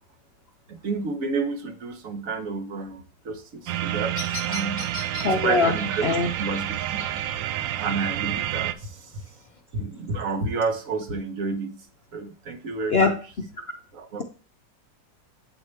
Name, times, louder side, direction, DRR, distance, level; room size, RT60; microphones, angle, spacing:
voice 1, 0.7-4.9 5.2-6.0 6.4-7.1 7.8-9.2 9.7-11.8 12.1-13.1 13.9-14.2, right 4 dB, 50° right, 6 dB, 1.3 m, -30 dB
Bird vocalization bird call bird song, 3.6-9.6, left 3 dB, 25° left, 1.4 m, -42 dB
sound 1, 3.7-8.7, right 12 dB, 80° right, 1.3 m, -29 dB
voice 2, 5.2-5.7 6.0-6.3 12.9-13.1, left 4 dB, 70° left, 3 dB, 0.6 m, -21 dB
8.9 x 4.7 x 3.2 m, 0.37 s
omnidirectional pair, 2.0 m